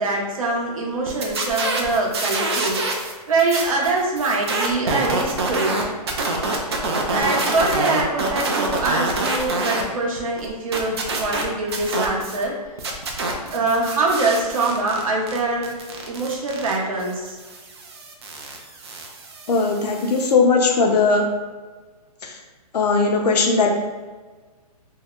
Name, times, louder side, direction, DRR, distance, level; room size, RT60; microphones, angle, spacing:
voice 1, 0.0-2.8 3.3-5.9 7.1-12.6 13.5-15.7 16.1-17.4, right 2 dB, 60° right, -2 dB, 0.9 m, -23 dB
sound 1, 1.1-3.1 3.4-9.8 10.2-12.4 12.8-20.3, right 2 dB, 40° right, 0.5 m, -26 dB
voice 2, 19.5-21.2 22.7-23.7, left 4 dB, 80° left, 2 dB, 0.7 m, -18 dB
2.7 x 2.1 x 3.6 m, 1.4 s
hypercardioid pair, 175°, 20 cm